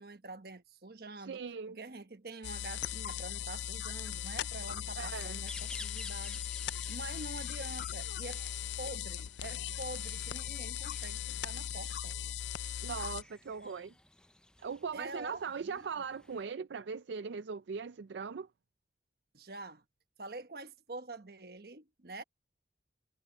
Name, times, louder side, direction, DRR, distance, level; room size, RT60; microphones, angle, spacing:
voice 1, 0.0-6.4 6.9-8.4 8.8-12.1 13.6-13.7 14.9-16.0 19.3-19.8 20.2-22.2, right 2 dB, 55° right, 1.2 m, -46 dB
voice 2, 1.3-1.8 5.0-5.4 12.8-13.9 14.6-18.5, right 5 dB, 75° right, 0.4 m, -40 dB
sound 1, 2.4-13.2, left 10 dB, 75° left, 0.4 m, -39 dB
sound 2, 4.9-16.5, left 1 dB, 5° left, 0.5 m, -54 dB
head